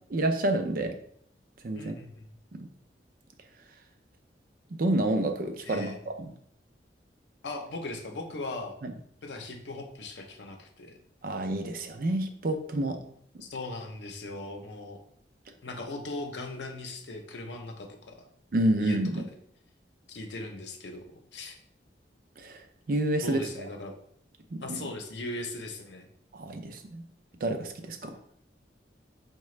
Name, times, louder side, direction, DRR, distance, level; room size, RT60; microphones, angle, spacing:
voice 1, 0.1-0.9 1.6-1.9 2.5-2.7 4.8-6.3 8.8-8.9 11.2-13.0 18.5-19.2 22.4-23.6 24.5-24.9 26.3-27.0 27.4-28.2, right 1 dB, 55° right, 6 dB, 0.4 m, -29 dB
voice 2, 1.8-2.3 5.6-6.0 7.4-8.8 9.2-10.9 13.4-15.0 15.6-18.3 18.8-19.3 20.1-21.1 21.3-21.5 23.2-23.9 24.6-26.1, left 2 dB, 80° left, 4 dB, 0.6 m, -39 dB
4.7 x 2.2 x 3.1 m, 0.66 s
head